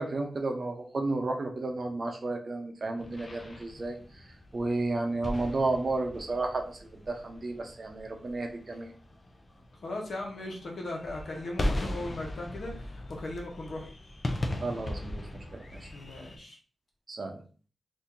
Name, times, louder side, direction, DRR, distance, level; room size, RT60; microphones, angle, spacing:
voice 1, 0.0-4.0 4.5-8.9 14.6-15.2 15.5-15.9 17.1-17.4, right 2 dB, 40° right, 3 dB, 0.7 m, -32 dB
sound 1, 3.0-16.4, left 1 dB, 35° left, 0.6 m, -38 dB
voice 2, 9.8-13.9 15.9-16.6, left 2 dB, 70° left, -1 dB, 1.1 m, -38 dB
2.8 x 2.7 x 3.7 m, 0.38 s
wide cardioid pair, 130°, 0 cm